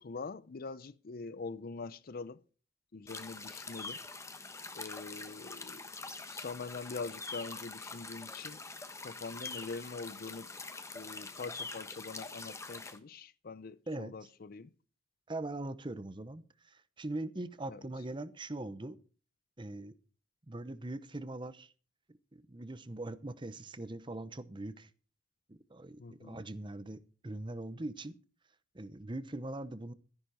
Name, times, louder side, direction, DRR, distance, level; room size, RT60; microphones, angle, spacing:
voice 1, 0.0-2.4 2.9-4.0 4.7-5.8 6.3-8.6 9.0-10.5 10.9-14.7 17.7-17.8 26.0-26.4, left 4 dB, 50° left, 0.5 m, -44 dB
sound 1, 3.1-13.0, left 3 dB, 15° left, 1.1 m, -44 dB
voice 2, 15.3-19.0 19.6-19.9 20.5-21.7 22.1-24.9 25.5-28.2 28.7-29.9, right 2 dB, 25° right, 0.8 m, -41 dB
13.0 x 10.5 x 4.9 m
head